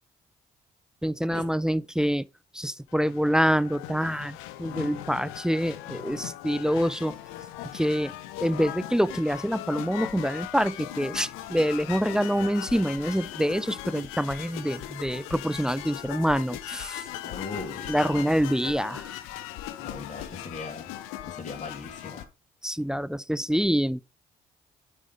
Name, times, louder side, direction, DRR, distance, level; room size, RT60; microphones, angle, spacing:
voice 1, 1.0-2.3 2.5-7.2 7.7-8.1 8.4-17.1 17.9-19.2 22.6-24.0, equal, 5° right, 0.4 m, -26 dB
sound 1, 2.9-22.2, left 13 dB, 80° left, 0.6 m, -39 dB
voice 2, 17.2-18.3 19.8-20.9 21.3-22.3, left 3 dB, 35° left, 2.6 m, -39 dB
9.3 x 5.6 x 3.5 m
hypercardioid pair, 45°, 21 cm